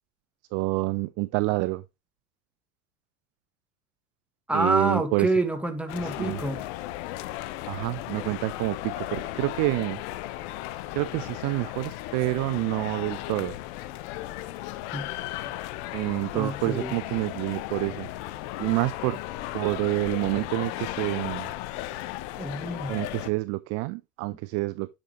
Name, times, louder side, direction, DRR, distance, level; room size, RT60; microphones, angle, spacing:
voice 1, 0.5-1.8 4.5-5.3 6.2-6.4 7.7-10.0 10.9-13.5 15.9-18.1 18.6-19.2 19.5-21.5 22.9-24.9, right 22 dB, 40° right, 0.4 m, -28 dB
voice 2, 4.5-6.6 14.9-15.1 16.3-16.9 22.4-23.0, right 2 dB, 5° right, 1.8 m, -27 dB
sound 1, 5.9-23.3, left 15 dB, 55° left, 0.9 m, -36 dB
9.9 x 6.2 x 3.1 m
hypercardioid pair, 85°, 41 cm